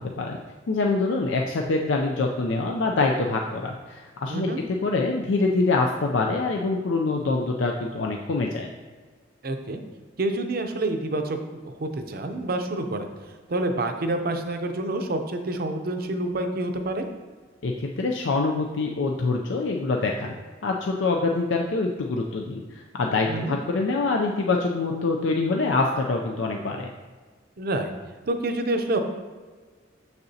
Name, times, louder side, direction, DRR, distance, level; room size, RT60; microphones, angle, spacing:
voice 1, 0.7-8.7 17.6-20.3 20.6-26.9, left 3 dB, 75° left, 1 dB, 0.5 m, -25 dB
voice 2, 4.3-4.6 9.4-9.8 10.2-13.1 13.5-17.1 23.3-23.6 27.6-27.9 28.3-29.0, right 2 dB, 50° right, 6 dB, 0.6 m, -28 dB
6.8 x 6.6 x 2.8 m, 1.4 s
head